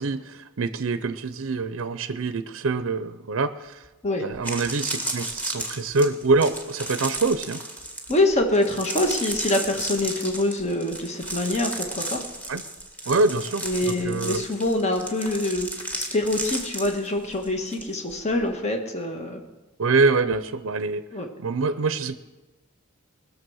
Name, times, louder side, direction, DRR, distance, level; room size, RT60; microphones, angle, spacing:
voice 1, 0.0-3.8 4.2-7.6 12.5-12.6 13.1-14.4 19.8-21.0 21.4-22.1, right 3 dB, 75° right, 12 dB, 0.6 m, -25 dB
sound 1, 3.8-3.9 4.3-17.8 18.1-18.4, right 1 dB, 5° left, 1.7 m, -33 dB
voice 2, 8.1-12.2 13.6-19.4 21.1-21.3, left 1 dB, 35° left, 4 dB, 1.4 m, -25 dB
20.5 x 6.9 x 6.3 m, 1.1 s
head